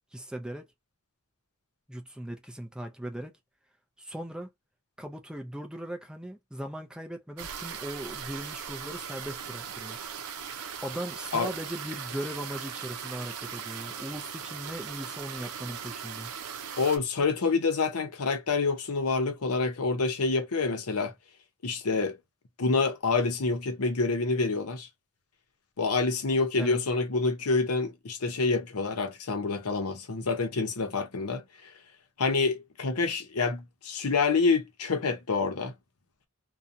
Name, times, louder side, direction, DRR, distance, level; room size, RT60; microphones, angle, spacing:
voice 1, 0.1-0.7 1.9-3.4 4.0-4.5 5.0-10.0 10.8-16.3 26.6-26.8, right 1 dB, 5° right, 0.4 m, -38 dB
sound 1, 7.4-17.0, right 7 dB, 90° right, 0.6 m, -39 dB
voice 2, 16.8-21.1 21.6-22.2 22.6-24.9 25.8-31.4 32.2-35.7, left 4 dB, 90° left, 0.8 m, -27 dB
2.8 x 2.2 x 2.5 m
head